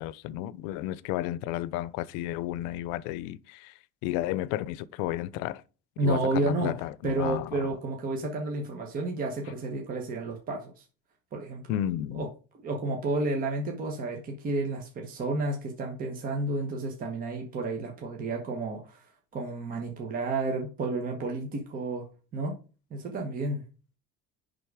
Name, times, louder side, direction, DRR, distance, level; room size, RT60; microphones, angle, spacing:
voice 1, 0.0-3.7 4.0-5.6 6.0-7.7 11.7-12.3, left 13 dB, 85° left, 0.6 m, -32 dB
voice 2, 6.0-6.7 7.0-10.8 11.3-11.7 12.1-12.3 12.6-22.1 22.3-22.5 22.9-23.6, right 2 dB, 30° right, 1.2 m, -31 dB
10.5 x 3.9 x 4.8 m
cardioid pair, 170°, 30 cm